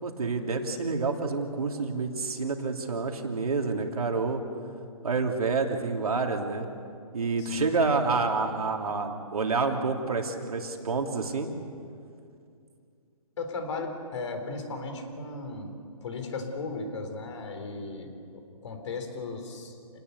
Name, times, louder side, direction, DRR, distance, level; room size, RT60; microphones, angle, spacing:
voice 1, 0.0-4.4 5.0-6.7 7.1-11.5, right 4 dB, 75° right, 3 dB, 3.1 m, -28 dB
voice 2, 7.4-7.7 13.4-15.7 16.0-20.0, left 3 dB, 55° left, 6 dB, 3.9 m, -36 dB
28.5 x 19.5 x 6.9 m, 2.4 s
hypercardioid pair, 150°, 19 cm